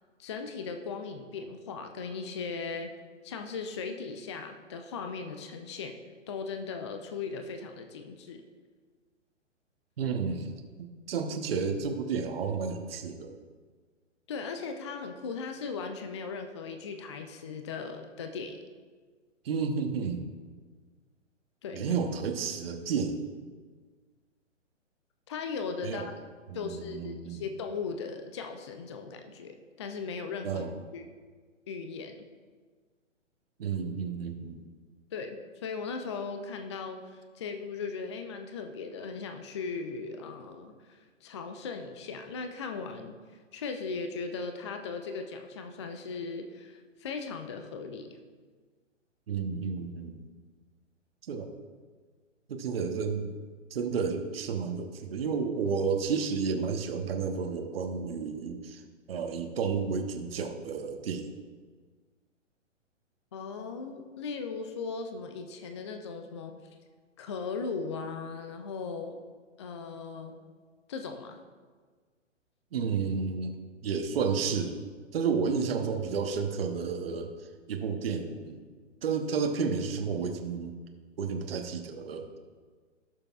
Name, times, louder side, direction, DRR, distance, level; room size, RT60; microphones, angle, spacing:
voice 1, 0.2-2.9 3.2-6.0 6.3-8.4 14.3-18.6 21.6-21.9 25.3-26.1 26.5-30.6 30.9-31.0 31.7-32.2 35.1-35.4 35.6-43.1 43.5-48.2 63.3-66.5 67.2-69.2 69.6-70.4 70.9-71.4, left 5 dB, 25° left, 6 dB, 0.4 m, -38 dB
voice 2, 10.0-10.5 11.1-13.3 19.4-20.2 21.7-23.2 25.8-26.1 26.5-27.4 30.4-30.8 33.6-34.7 49.3-50.2 51.2-51.5 52.5-53.3 53.7-58.8 59.1-61.3 72.7-73.5 73.8-74.8 75.1-77.3 77.7-78.6 79.0-80.7 81.2-82.4, right 5 dB, 50° right, 5 dB, 1.1 m, -31 dB
18.0 x 6.7 x 2.4 m, 1.5 s
figure-of-eight pair, 125°, 38 cm